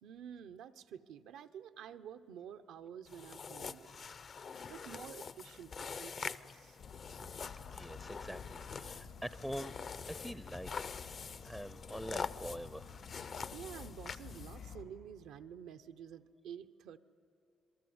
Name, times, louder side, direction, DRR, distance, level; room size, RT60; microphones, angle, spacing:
voice 1, 0.0-4.0 4.7-6.8 13.5-17.0, right 8 dB, 85° right, 9 dB, 0.7 m, -50 dB
sound 1, 3.1-14.7, left 5 dB, 50° left, 0.6 m, -45 dB
Insect / Frog, 6.8-14.8, left 5 dB, 85° left, 3.0 m, -51 dB
voice 2, 7.5-9.8 10.1-10.9 11.4-12.9, equal, ahead, 14 dB, 0.5 m, -45 dB
27.5 x 22.0 x 7.9 m, 2.5 s
cardioid pair, 90°, 0 cm